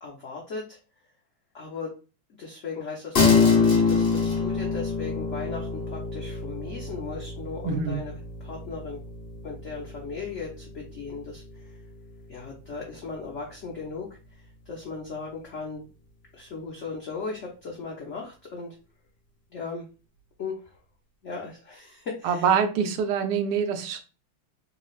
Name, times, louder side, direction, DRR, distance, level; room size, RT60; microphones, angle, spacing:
voice 1, 0.0-0.8 1.5-2.0 2.4-9.0 9.4-11.8 12.3-14.1 14.7-15.9 16.3-18.8 19.5-19.9 20.4-20.8 21.2-22.5, left 4 dB, 85° left, -3 dB, 0.6 m, -37 dB
sound 1, 3.1-12.9, left 5 dB, 50° left, 0.7 m, -26 dB
voice 2, 7.6-8.0 22.2-24.0, right 7 dB, 90° right, 7 dB, 1.5 m, -25 dB
3.6 x 3.1 x 2.4 m, 0.34 s
omnidirectional pair, 2.4 m